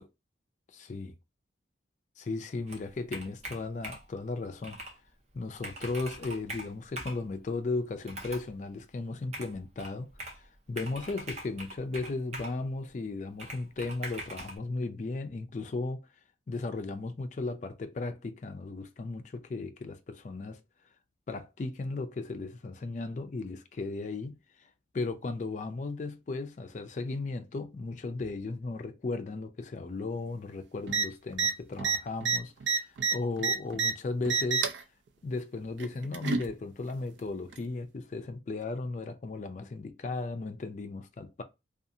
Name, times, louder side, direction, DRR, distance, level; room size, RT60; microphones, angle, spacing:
voice 1, 0.7-1.1 2.2-4.8 5.3-10.1 10.3-16.1 16.5-20.6 21.3-24.4 24.9-34.7 35.2-41.4, left 3 dB, 40° left, 0.3 m, -36 dB
Computer keyboard, 2.7-4.2 4.6-5.0 5.3-5.4 5.6-7.2 8.0-8.5 9.3-10.4 10.8-12.6 13.4-14.6, right 1 dB, 35° right, 0.6 m, -42 dB
sound 1, 30.9-31.0 31.3-31.5 31.8-33.9 34.2-34.8 35.8-36.5 37.5-37.6, right 5 dB, 70° right, 0.4 m, -28 dB
2.6 x 2.4 x 2.6 m
head